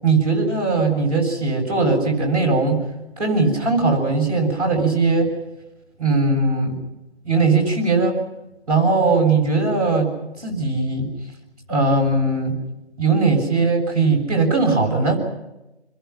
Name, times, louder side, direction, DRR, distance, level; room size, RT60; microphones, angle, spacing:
voice 1, 0.0-2.8 3.2-5.3 6.0-6.8 7.2-8.2 8.7-10.1 10.4-11.1 11.7-12.6 13.0-15.2, right 3 dB, 35° right, 0 dB, 7.1 m, -19 dB
30.0 x 22.0 x 5.9 m, 0.97 s
figure-of-eight pair, 180°, 34 cm